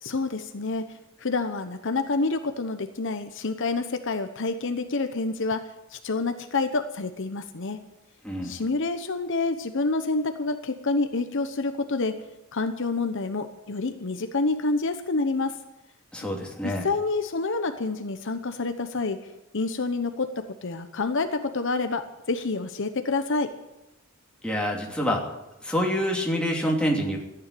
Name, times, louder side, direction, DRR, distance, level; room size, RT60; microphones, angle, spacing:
voice 1, 0.0-7.8 8.4-12.2 12.5-15.6 16.6-19.2 19.5-23.5, left 3 dB, 60° left, 8 dB, 1.0 m, -28 dB
voice 2, 8.2-8.6 16.1-16.8 24.4-25.2 25.6-27.2, equal, 5° left, -1 dB, 2.8 m, -26 dB
14.0 x 9.6 x 9.8 m, 0.92 s
head